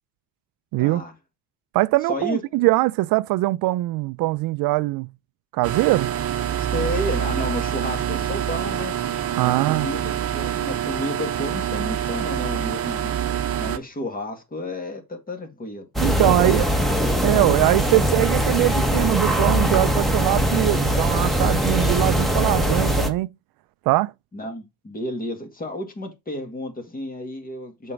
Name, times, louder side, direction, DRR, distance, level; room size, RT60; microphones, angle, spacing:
voice 1, 0.8-1.1 2.1-2.4 6.7-8.9 9.4-13.2 13.6-15.9 16.2-16.5 24.3-27.9, left 1 dB, 25° left, 2.0 m, -31 dB
voice 2, 1.7-5.1 5.5-6.1 9.4-9.9 16.0-16.7 17.2-23.3 23.9-24.1, right 19 dB, 65° right, 0.5 m, -21 dB
sound 1, 5.6-13.8, right 10 dB, 40° right, 1.0 m, -26 dB
sound 2, 16.0-23.1, equal, ahead, 1.4 m, -21 dB
6.9 x 4.5 x 5.0 m
cardioid pair, 120°, 38 cm